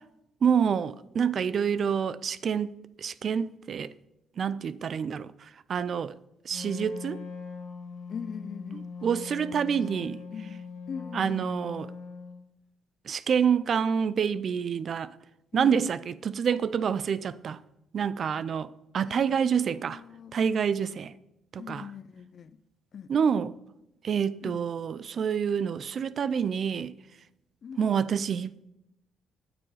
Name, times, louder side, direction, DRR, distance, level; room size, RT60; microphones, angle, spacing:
voice 1, 0.4-3.9 4.4-5.3 5.7-6.1 6.5-7.2 9.0-10.2 11.1-11.9 13.1-15.1 15.5-17.6 17.9-20.0 20.3-21.1 21.5-21.8 23.1-23.5 24.0-26.9 27.8-28.7, right 7 dB, 55° right, 0.4 m, -27 dB
Wind instrument woodwind instrument, 6.5-12.4, left 5 dB, 75° left, 1.4 m, -41 dB
voice 2, 8.1-8.9 9.9-10.6 10.9-11.5 15.5-15.9 19.0-20.4 21.6-22.6 22.9-23.1 24.4-24.7 27.6-28.0, left 7 dB, 55° left, 0.5 m, -41 dB
8.7 x 6.7 x 5.6 m
cardioid pair, 90°, 0 cm